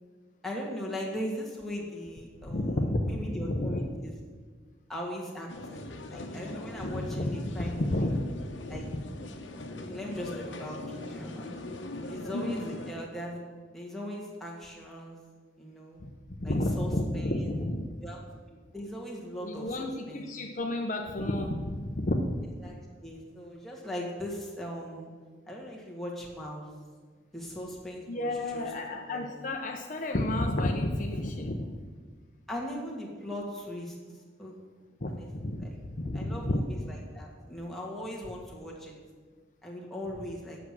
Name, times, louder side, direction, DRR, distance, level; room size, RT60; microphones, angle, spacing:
voice 1, 0.4-4.2 4.9-7.9 8.7-8.9 9.8-11.5 12.1-13.4 13.7-15.2 15.6-16.0 16.4-17.5 18.0-18.2 18.5-20.3 22.6-25.1 25.5-26.7 27.3-29.2 32.5-34.0 34.4-34.6 35.1-35.3 35.6-35.8 36.1-38.9 39.6-40.6, equal, ahead, -4 dB, 1.8 m, -39 dB
voice 2, 2.5-3.8 6.8-7.3 7.6-8.3 16.4-17.9 19.4-22.3 28.1-31.7 35.0-36.6, left 1 dB, 45° left, 2 dB, 0.7 m, -31 dB
sound 1, 5.5-12.9, left 2 dB, 85° left, 1.0 m, -40 dB
8.3 x 6.0 x 7.5 m, 1.5 s
head